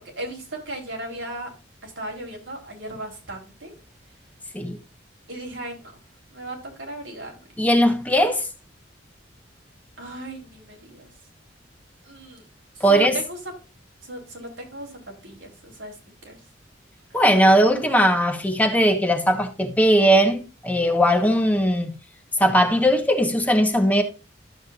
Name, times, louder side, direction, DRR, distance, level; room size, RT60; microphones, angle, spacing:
voice 1, 0.0-1.5 1.8-3.7 5.3-5.9 6.3-7.4 10.0-11.1 12.0-12.4 12.7-13.5 14.0-16.4 17.1-17.4, right 1 dB, 80° right, 3.6 m, -36 dB
voice 2, 7.6-8.5 12.8-13.2 17.1-21.9 22.4-24.0, equal, 10° left, 1.0 m, -19 dB
12.0 x 7.4 x 2.4 m
head